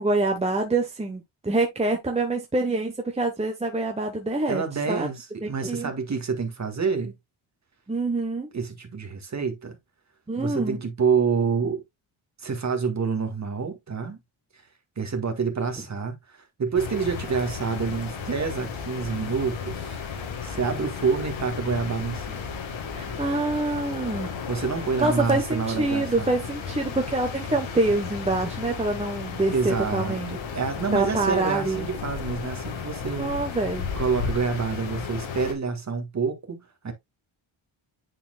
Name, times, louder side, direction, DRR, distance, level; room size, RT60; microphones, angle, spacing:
voice 1, 0.0-5.1 5.4-5.9 7.9-8.5 10.3-10.8 23.0-24.3 25.0-30.4 30.9-31.9 33.2-33.9, right 2 dB, 15° right, 1.1 m, -26 dB
voice 2, 4.5-7.1 8.5-9.8 10.4-11.8 12.4-14.2 15.0-20.0 20.4-22.5 24.5-26.3 29.5-33.3 34.0-36.9, right 5 dB, 35° right, 1.9 m, -28 dB
sound 1, 16.7-35.5, left 6 dB, 70° left, 1.8 m, -34 dB
10.0 x 4.4 x 2.3 m
cardioid pair, 105°, 49 cm